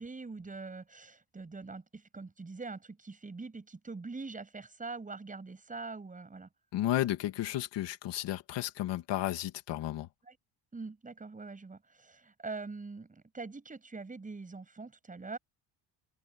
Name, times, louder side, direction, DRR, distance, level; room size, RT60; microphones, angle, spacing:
voice 1, 0.0-6.5 10.3-10.4 10.7-15.4, right 3 dB, 15° right, 7.4 m, -43 dB
voice 2, 6.7-10.1, left 13 dB, 65° left, 2.3 m, -33 dB
open air
cardioid pair, 150°, 45 cm